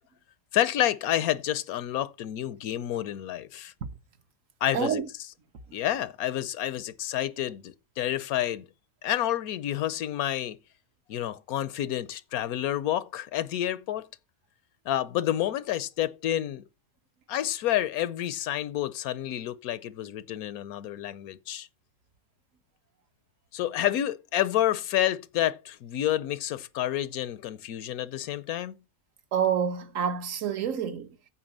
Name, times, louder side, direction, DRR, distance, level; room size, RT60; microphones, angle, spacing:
voice 1, 0.5-3.7 4.6-5.0 5.7-8.7 9.0-10.6 11.1-14.1 14.9-16.6 17.3-21.7 23.5-28.8, left 12 dB, 85° left, 1.2 m, -29 dB
voice 2, 4.7-5.1 5.7-5.8 29.3-31.2, right 8 dB, 65° right, 1.3 m, -28 dB
8.8 x 4.5 x 7.3 m
omnidirectional pair, 1.5 m